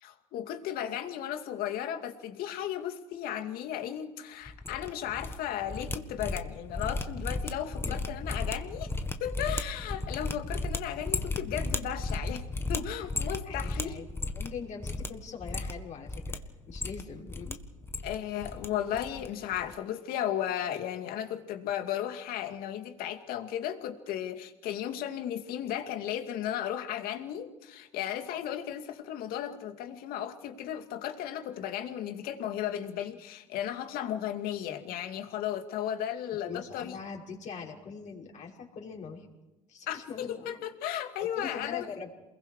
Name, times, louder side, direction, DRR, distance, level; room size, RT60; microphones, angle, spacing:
voice 1, 0.0-8.9 9.2-14.0 18.0-36.9 39.9-41.8, left 10 dB, 60° left, 6 dB, 2.5 m, -35 dB
sound 1, 4.5-5.4 5.6-14.6 14.8-15.1 15.4-16.4 16.7-17.5 17.8-18.7 18.9-19.3 19.5-19.7, left 2 dB, 15° left, 1.6 m, -34 dB
voice 2, 13.4-14.1 14.3-16.4 16.7-17.6 18.3-18.5 36.4-39.3 39.7-40.6 41.2-42.2, left 6 dB, 45° left, -2 dB, 5.7 m, -42 dB
28.0 x 21.5 x 5.0 m, 0.99 s
hypercardioid pair, 85°, 17 cm